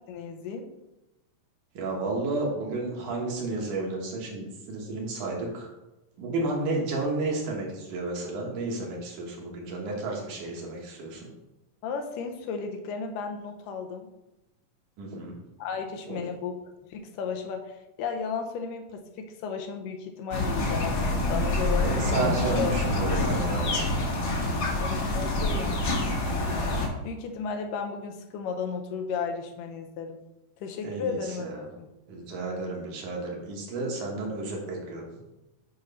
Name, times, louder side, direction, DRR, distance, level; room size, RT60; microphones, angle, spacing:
voice 1, 0.1-0.7 11.8-14.1 15.6-16.6 16.9-21.9 22.6-22.8 24.8-26.6 27.0-30.2 30.6-31.9, left 5 dB, 90° left, 5 dB, 2.4 m, -34 dB
voice 2, 1.7-5.7 6.2-11.3 15.0-15.3 16.1-16.2 21.8-24.1 30.8-31.7 32.1-35.0, right 2 dB, 70° right, -1 dB, 2.8 m, -32 dB
sound 1, 20.3-26.9, left 2 dB, 65° left, 1.0 m, -26 dB
8.8 x 3.1 x 5.5 m, 0.98 s
omnidirectional pair, 3.8 m